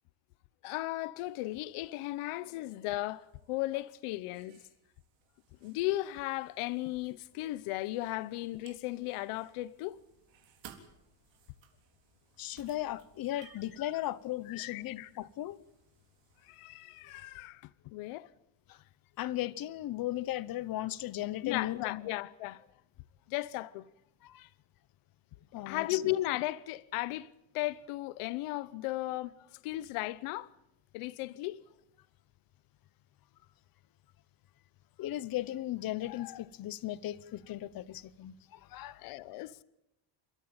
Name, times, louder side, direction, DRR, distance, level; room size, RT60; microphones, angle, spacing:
voice 1, 0.6-4.6 5.6-10.0 13.3-13.5 14.5-15.1 16.4-18.3 21.4-22.7 23.3-23.9 25.7-30.5 30.9-31.6 39.0-39.6, left 17 dB, 90° left, 1.0 m, -36 dB
sound 1, 1.2-17.5, right 8 dB, 60° right, 3.8 m, -62 dB
voice 2, 12.4-15.6 18.7-18.8 19.2-22.1 24.2-24.5 25.5-26.0 35.0-39.0, left 14 dB, 45° left, 0.9 m, -37 dB
29.5 x 14.0 x 8.8 m
cardioid pair, 175°, 49 cm